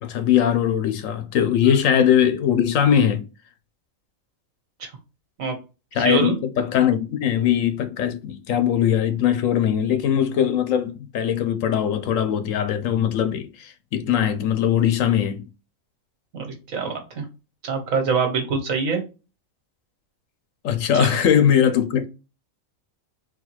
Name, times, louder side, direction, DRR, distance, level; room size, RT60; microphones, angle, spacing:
voice 1, 0.0-3.2 5.9-15.5 20.6-22.1, left 9 dB, 80° left, 1.1 m, -20 dB
voice 2, 5.9-6.3 16.3-17.2 17.6-19.0 20.9-21.2, right 4 dB, 80° right, 1.6 m, -25 dB
3.9 x 2.4 x 4.4 m
omnidirectional pair, 1.4 m